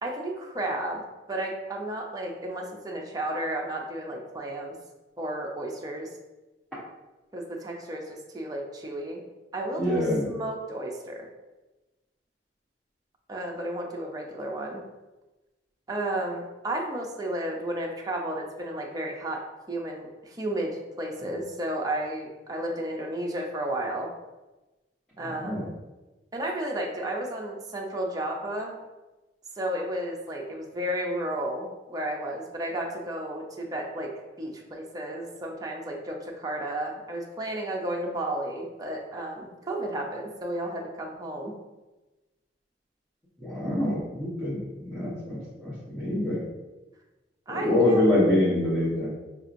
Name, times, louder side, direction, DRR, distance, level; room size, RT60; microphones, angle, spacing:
voice 1, 0.0-4.8 5.2-6.1 7.3-9.2 9.5-11.3 13.3-14.8 15.9-19.4 19.7-24.1 25.2-25.7 26.3-28.7 29.6-34.1 34.4-41.5 47.5-48.0, right 1 dB, 20° right, -1 dB, 0.5 m, -32 dB
voice 2, 9.8-10.2 25.2-25.7 43.4-46.4 47.5-49.1, left 1 dB, 5° left, -13 dB, 0.9 m, -25 dB
4.9 x 2.7 x 2.5 m, 1.1 s
head